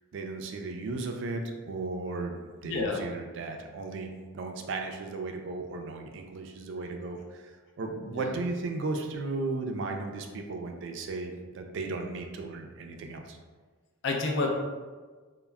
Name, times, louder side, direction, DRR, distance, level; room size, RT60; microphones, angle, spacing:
voice 1, 0.1-2.4 2.6-7.5 7.8-13.4, right 3 dB, 60° right, 4 dB, 0.3 m, -35 dB
voice 2, 2.6-3.0 8.1-8.3 14.0-14.5, left 3 dB, 55° left, 1 dB, 0.4 m, -29 dB
2.1 x 2.0 x 3.4 m, 1.4 s
head